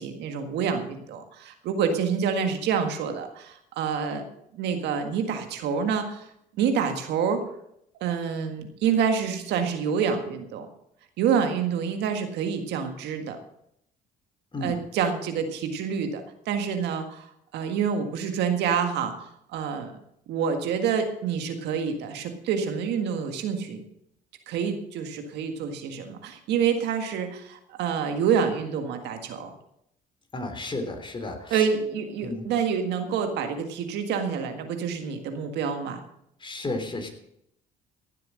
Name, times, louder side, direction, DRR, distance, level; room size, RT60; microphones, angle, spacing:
voice 1, 0.0-4.3 4.5-6.3 6.6-7.4 8.0-10.7 11.2-13.4 14.6-17.3 17.5-19.9 20.3-23.8 24.5-29.5 31.5-36.0, right 7 dB, 75° right, 6 dB, 1.8 m, -27 dB
voice 2, 30.3-31.6 32.2-32.4 36.4-37.1, left 2 dB, 30° left, 5 dB, 3.4 m, -32 dB
15.5 x 7.8 x 6.4 m, 0.75 s
supercardioid pair, 80°, 18 cm